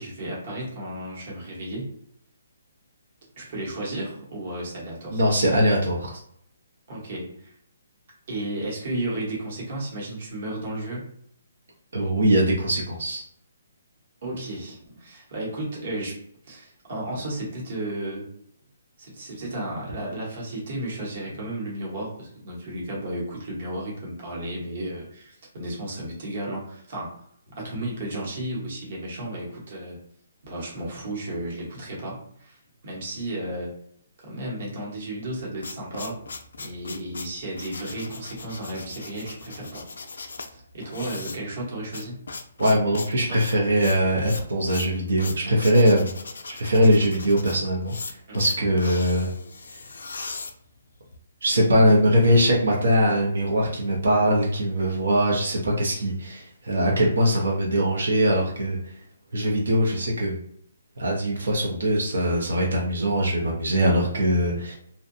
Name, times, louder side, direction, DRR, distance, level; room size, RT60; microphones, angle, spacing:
voice 1, 0.0-1.9 3.4-5.2 6.9-7.5 8.3-11.1 14.2-16.2 16.5-18.3 19.0-27.2 27.5-30.0 30.4-32.6 32.8-33.7 34.2-36.2 36.6-39.9 40.5-42.2 48.3-48.4, right 1 dB, 40° right, -3 dB, 0.9 m, -33 dB
voice 2, 5.1-6.2 11.9-13.2 42.6-46.1 46.5-47.9 48.3-49.3 49.7-49.8 51.4-58.8 59.3-60.4 61.0-64.8, equal, 70° right, -2 dB, 0.7 m, -21 dB
sound 1, 35.2-51.2, left 4 dB, 80° left, 0.4 m, -39 dB
2.6 x 2.1 x 2.6 m, 0.67 s
hypercardioid pair, 175°, 0 cm